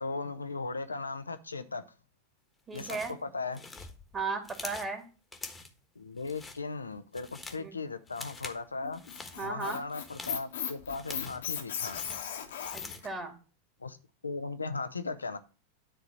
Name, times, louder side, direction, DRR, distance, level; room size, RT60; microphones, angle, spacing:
voice 1, 0.0-1.8 2.7-3.9 6.0-9.0 9.4-12.0 13.8-14.0 14.2-15.4, left 3 dB, 85° left, 0.8 m, -37 dB
sound 1, 2.7-3.2 3.5-4.9 5.3-5.8 6.2-6.6 7.0-7.7 8.1-8.6 8.9-9.4 9.9-11.5 11.8-13.1, left 3 dB, 15° left, 1.3 m, -45 dB
voice 2, 2.7-3.1 4.1-5.0 7.6-7.8 9.4-9.8 12.7-13.4, right 4 dB, 25° right, 2.2 m, -36 dB
Squeak, 8.8-13.1, left 8 dB, 65° left, 1.3 m, -37 dB
10.0 x 3.9 x 6.3 m
figure-of-eight pair, 90°, 0 cm